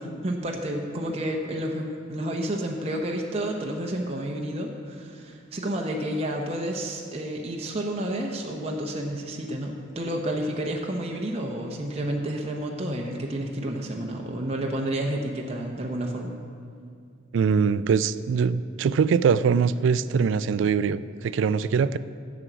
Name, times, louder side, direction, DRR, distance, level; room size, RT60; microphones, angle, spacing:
voice 1, 0.0-16.4, right 1 dB, 30° right, 1 dB, 0.8 m, -30 dB
voice 2, 17.3-22.0, right 6 dB, 70° right, 16 dB, 0.3 m, -22 dB
9.8 x 6.1 x 7.9 m, 2.3 s
head